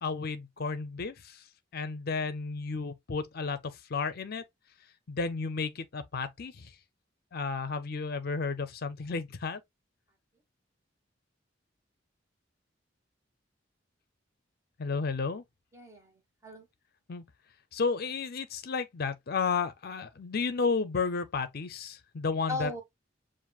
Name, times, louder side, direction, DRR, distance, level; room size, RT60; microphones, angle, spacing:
voice 1, 0.0-1.4 1.7-4.4 5.1-6.7 7.3-9.6 14.8-15.4 17.1-17.2 17.7-22.7, left 4 dB, 50° left, 0.5 m, -32 dB
voice 2, 15.7-16.7 22.5-22.8, left 2 dB, 15° right, 1.4 m, -37 dB
7.2 x 2.5 x 2.3 m
head